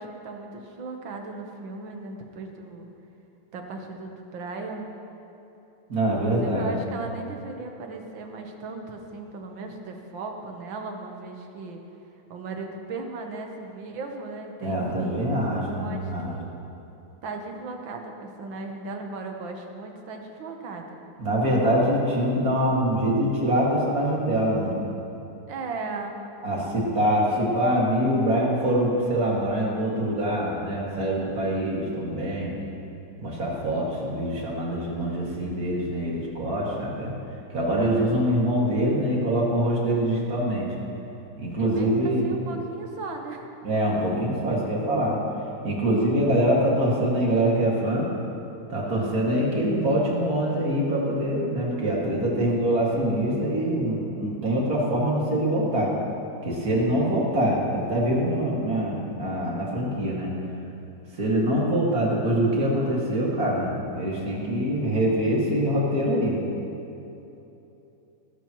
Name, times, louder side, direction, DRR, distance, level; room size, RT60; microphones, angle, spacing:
voice 1, 0.0-2.9 3.5-4.9 6.1-11.8 12.3-16.5 17.2-21.0 25.5-26.2 41.6-43.4, right 3 dB, 65° right, 3 dB, 1.8 m, -37 dB
voice 2, 5.9-6.7 14.6-16.3 21.2-24.7 26.4-32.5 33.2-37.1 37.5-40.7 41.4-42.3 43.6-45.2 45.6-48.1 48.7-55.9 56.4-60.3 61.2-66.4, right 1 dB, 45° right, -4 dB, 2.6 m, -24 dB
19.0 x 12.5 x 3.1 m, 2.9 s
omnidirectional pair, 2.3 m